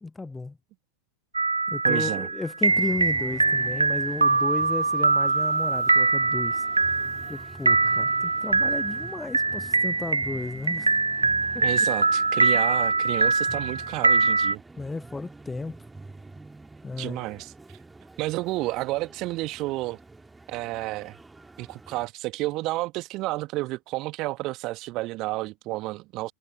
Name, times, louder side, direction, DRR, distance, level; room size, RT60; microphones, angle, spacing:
voice 1, 0.0-0.6 1.7-6.6 7.3-10.9 11.5-11.6 14.8-15.8 16.8-17.4, left 3 dB, 10° left, 1.0 m, -34 dB
sound 1, 1.3-14.5, right 3 dB, 80° right, 0.8 m, -23 dB
voice 2, 1.8-2.3 11.6-14.6 17.0-17.5 18.2-20.0 20.5-21.2 21.6-26.3, right 20 dB, 40° right, 1.6 m, -31 dB
sound 2, 2.7-22.1, right 3 dB, 10° right, 2.5 m, -47 dB
figure-of-eight pair, 90°, 0 cm